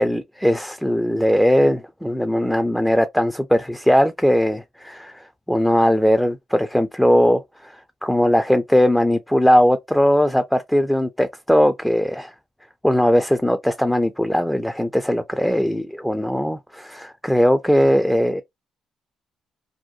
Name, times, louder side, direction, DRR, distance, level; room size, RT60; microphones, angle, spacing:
voice 1, 0.0-7.7 8.0-12.3 12.8-18.4, equal, ahead, 0.3 m, -19 dB
2.6 x 2.1 x 2.4 m
cardioid pair, 90°, 0 cm